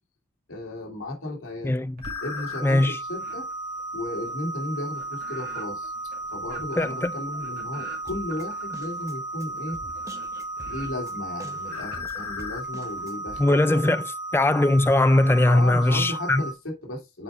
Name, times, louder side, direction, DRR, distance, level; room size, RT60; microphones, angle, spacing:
voice 1, 0.5-1.7 2.2-3.5 3.9-5.9 6.3-9.8 10.6-13.8 15.4-17.2, left 1 dB, 65° left, 2.6 m, -34 dB
voice 2, 1.6-2.0 2.6-3.0 6.8-7.1 13.4-16.5, left 1 dB, 10° left, 0.3 m, -20 dB
sound 1, 2.0-16.5, right 1 dB, 80° left, 1.3 m, -34 dB
sound 2, 2.0-2.8 3.2-13.0, right 3 dB, 45° right, 2.3 m, -46 dB
Drum kit, 8.1-13.4, right 1 dB, 15° right, 0.9 m, -45 dB
7.5 x 4.9 x 3.5 m
head